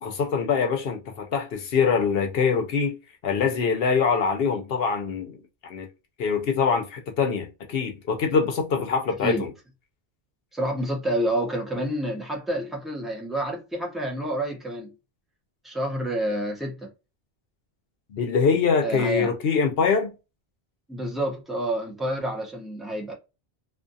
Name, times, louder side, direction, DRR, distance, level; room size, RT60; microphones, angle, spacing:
voice 1, 0.0-2.9 3.2-5.9 6.2-9.5 18.1-20.1, left 5 dB, 70° left, 0.8 m, -24 dB
voice 2, 10.5-14.9 15.6-16.9 18.8-19.3 20.9-23.1, right 1 dB, ahead, 0.6 m, -28 dB
2.5 x 2.3 x 2.6 m
omnidirectional pair, 1.1 m